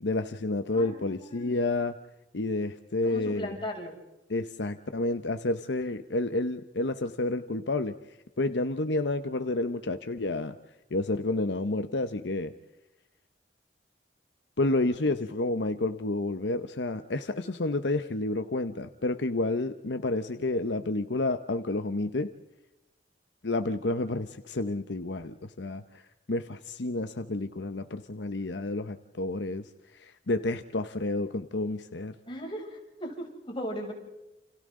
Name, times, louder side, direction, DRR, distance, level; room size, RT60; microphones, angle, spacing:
voice 1, 0.0-2.0 2.3-3.6 4.3-8.0 8.4-10.6 10.9-12.5 14.6-22.3 23.4-26.0 26.3-29.7 29.9-32.1, left 2 dB, 75° left, 9 dB, 0.9 m, -30 dB
voice 2, 0.7-1.6 3.0-3.9 15.0-15.1 32.3-33.9, equal, 30° left, -1 dB, 6.7 m, -38 dB
29.5 x 29.5 x 3.8 m, 0.99 s
head